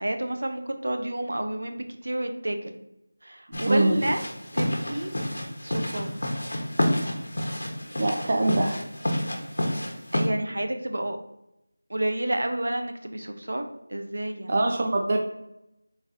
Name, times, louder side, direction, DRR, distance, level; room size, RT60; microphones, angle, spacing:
voice 1, 0.0-2.8 3.2-4.2 4.5-5.1 5.6-6.1 10.1-11.2 11.9-13.6 13.9-14.6, right 1 dB, 70° right, 6 dB, 0.6 m, -30 dB
sound 1, 3.5-10.3, left 1 dB, 75° left, 1.1 m, -29 dB
voice 2, 3.5-4.0 8.0-8.8 14.5-15.2, right 2 dB, 30° right, 2 dB, 0.4 m, -23 dB
4.0 x 2.6 x 4.2 m, 0.84 s
figure-of-eight pair, 175°, 0 cm